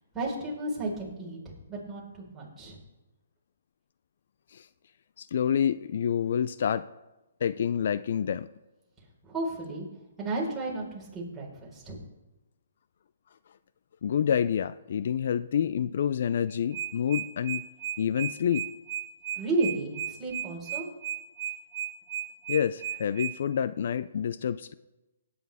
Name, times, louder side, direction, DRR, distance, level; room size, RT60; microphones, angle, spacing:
voice 1, 0.1-1.4 1.7-2.8 9.2-9.9 10.2-12.0 19.3-20.9, right 2 dB, 10° right, -6 dB, 4.6 m, -33 dB
voice 2, 5.2-6.8 7.4-8.5 14.0-17.6 18.0-18.7 22.5-24.7, left 8 dB, 60° left, 15 dB, 0.4 m, -28 dB
sound 1, 16.5-23.3, right 10 dB, 15° left, 5.0 m, -34 dB
17.5 x 9.5 x 3.6 m, 1.0 s
hypercardioid pair, 145°, 0 cm